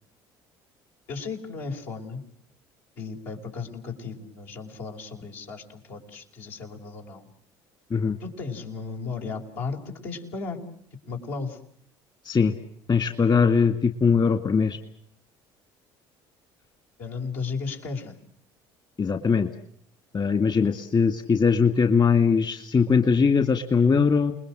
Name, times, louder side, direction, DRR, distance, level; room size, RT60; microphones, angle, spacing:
voice 1, 1.1-2.2 3.0-7.3 8.2-10.6 11.1-11.6 17.0-18.2, left 4 dB, 75° left, 0 dB, 5.3 m, -35 dB
voice 2, 12.2-12.5 12.9-14.8 19.0-19.5 20.1-24.3, left 5 dB, 40° left, 6 dB, 2.2 m, -21 dB
29.0 x 21.0 x 7.6 m, 0.66 s
hypercardioid pair, 70°, 11 cm